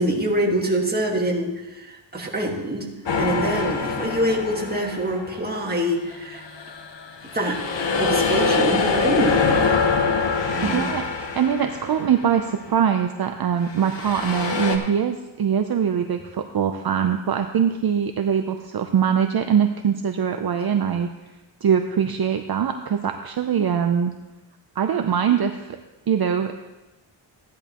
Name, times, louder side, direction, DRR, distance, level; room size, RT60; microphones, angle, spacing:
voice 1, 0.0-2.9 3.2-6.4 7.3-7.6 8.0-9.8 10.5-10.9, right 1 dB, 20° right, -1 dB, 1.8 m, -25 dB
sound 1, 3.1-5.6 6.1-12.6 13.7-14.8, left 4 dB, 70° left, 1.2 m, -24 dB
voice 2, 10.6-11.0 11.4-21.1 21.6-24.1 24.8-25.8 26.1-26.5, right 8 dB, 55° right, 6 dB, 0.6 m, -22 dB
14.0 x 10.5 x 3.0 m, 1.1 s
wide cardioid pair, 100°, 45 cm